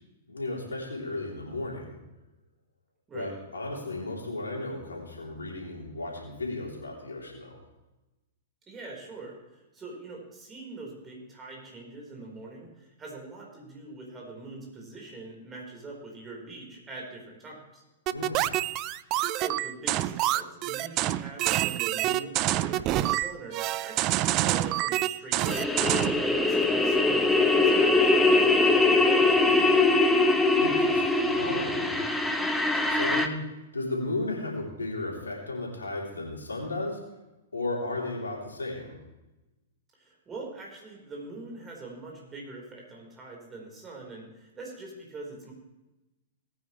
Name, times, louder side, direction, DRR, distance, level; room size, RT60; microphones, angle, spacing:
voice 1, 0.3-2.0 3.1-7.6 18.1-18.6 30.6-32.0 32.8-37.0 37.5-39.0, left 2 dB, 80° left, -2 dB, 3.3 m, -34 dB
voice 2, 3.1-3.4 8.7-17.8 19.3-25.8 26.2-29.9 39.9-45.5, right 3 dB, 20° right, -1 dB, 4.3 m, -42 dB
video game, 18.1-26.2, right 15 dB, 35° right, 0.4 m, -27 dB
sound 1, 25.5-33.3, left 2 dB, 5° left, 1.0 m, -22 dB
19.5 x 9.3 x 3.2 m, 1.0 s
figure-of-eight pair, 105°, 0 cm